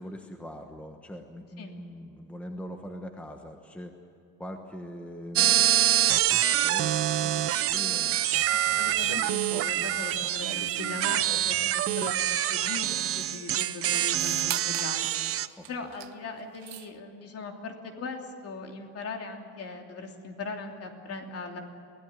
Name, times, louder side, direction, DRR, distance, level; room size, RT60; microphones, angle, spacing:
voice 1, 0.0-4.0 4.4-5.7 6.1-8.2 8.7-9.1 10.2-10.7 11.3-12.0 15.6-15.9, equal, 5° left, 4 dB, 1.2 m, -43 dB
sound 1, 5.4-15.5, right 12 dB, 40° right, 0.7 m, -26 dB
voice 2, 8.5-15.3 15.7-21.6, left 4 dB, 45° left, 3 dB, 3.0 m, -39 dB
sound 2, 8.9-11.6 12.7-12.8 13.0-13.4 13.9-14.9 15.6-16.1 16.4-16.9, right 16 dB, 75° right, 0.8 m, -41 dB
24.5 x 17.0 x 9.8 m, 2.6 s
cardioid pair, 160°, 35 cm